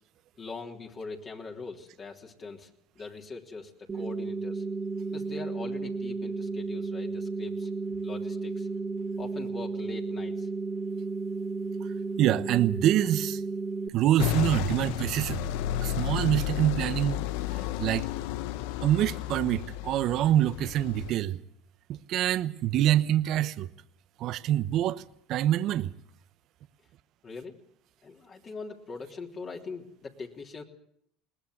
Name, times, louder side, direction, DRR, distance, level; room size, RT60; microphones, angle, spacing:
voice 1, 0.4-2.7 2.9-4.6 5.1-7.7 8.0-8.7 9.2-10.5 27.2-27.6 28.0-30.6, left 4 dB, 35° left, 3.4 m, -41 dB
sound 1, 3.9-13.9, right 4 dB, 25° right, 2.1 m, -33 dB
voice 2, 12.2-13.4 13.9-15.5 15.8-17.2 17.8-18.1 18.8-21.4 21.9-23.7 24.2-25.0 25.3-25.9, right 12 dB, 60° right, 1.0 m, -25 dB
sound 2, 14.2-21.1, left 12 dB, 75° left, 0.9 m, -32 dB
21.5 x 19.5 x 8.0 m
supercardioid pair, 90°, 0 cm